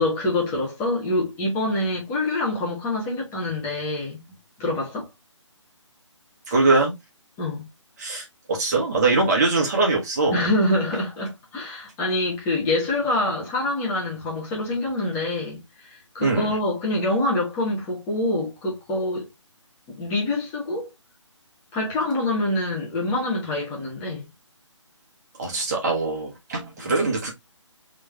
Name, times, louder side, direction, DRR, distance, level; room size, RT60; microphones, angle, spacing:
voice 1, 0.0-4.2 4.6-5.1 7.4-7.7 10.3-19.3 20.0-20.9 21.7-24.3 26.8-26.9, left 2 dB, 15° left, 1.4 m, -25 dB
voice 2, 6.5-6.9 8.0-10.4 16.2-16.5 25.4-27.3, right 3 dB, 35° right, 1.5 m, -22 dB
3.7 x 3.2 x 3.3 m
figure-of-eight pair, 150°, 16 cm